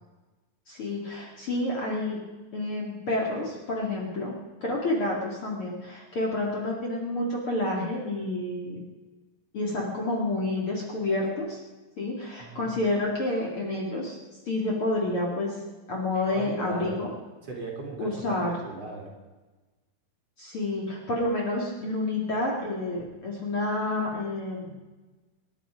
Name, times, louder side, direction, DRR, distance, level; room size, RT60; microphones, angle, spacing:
voice 1, 0.7-2.2 2.5-4.3 4.6-8.8 9.5-11.6 12.0-14.2 14.5-15.6 15.9-17.1 18.0-18.5 20.4-24.8, left 2 dB, 40° left, -2 dB, 2.7 m, -29 dB
voice 2, 12.4-12.7 16.1-17.0 17.4-18.4 18.6-19.1, right 2 dB, 45° right, -1 dB, 3.5 m, -38 dB
25.5 x 11.0 x 5.1 m, 1.2 s
omnidirectional pair, 4.3 m